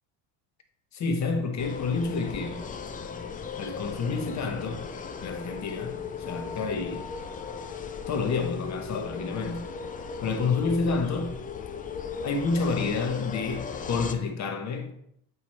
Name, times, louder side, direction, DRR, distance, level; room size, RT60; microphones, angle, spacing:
voice 1, 0.9-2.6 3.6-4.9 5.2-7.1 8.1-9.6 10.2-11.4 12.2-14.9, left 4 dB, 35° left, 1.2 m, -29 dB
sound 1, 1.6-14.1, left 6 dB, 20° left, 0.4 m, -37 dB
8.3 x 3.1 x 4.3 m
supercardioid pair, 95°, 49 cm